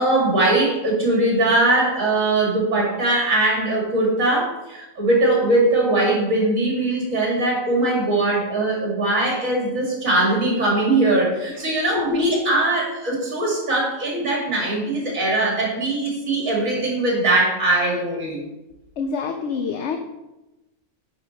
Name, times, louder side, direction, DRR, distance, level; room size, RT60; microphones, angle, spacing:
voice 1, 0.0-18.4, right 2 dB, 65° right, -2 dB, 2.7 m, -21 dB
voice 2, 19.0-20.0, left 6 dB, 60° left, 5 dB, 0.8 m, -26 dB
9.0 x 5.2 x 4.0 m, 0.99 s
omnidirectional pair, 1.5 m